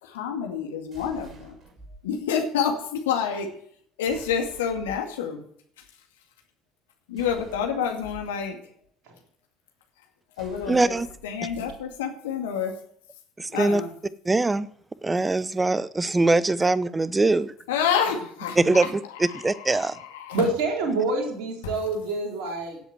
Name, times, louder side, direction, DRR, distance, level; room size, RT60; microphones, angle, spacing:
voice 1, 0.0-1.5 2.0-3.5 4.0-5.4 7.1-8.6 10.4-10.9 11.2-12.7 13.5-13.9 17.7-18.9 19.2-20.4 21.6-21.7, left 7 dB, 70° left, 3 dB, 2.2 m, -28 dB
sound 1, 0.9-2.0 4.0-5.1 7.1-8.2 10.3-11.8, right 2 dB, 40° right, 6.0 m, -47 dB
voice 2, 10.7-11.1 13.4-13.8 14.2-14.7 15.0-17.5 18.6-20.0, right 2 dB, 15° right, 17 dB, 0.9 m, -22 dB
voice 3, 20.3-22.8, right 3 dB, 55° right, 0 dB, 4.2 m, -27 dB
17.0 x 8.1 x 7.9 m, 0.63 s
figure-of-eight pair, 55°, 0 cm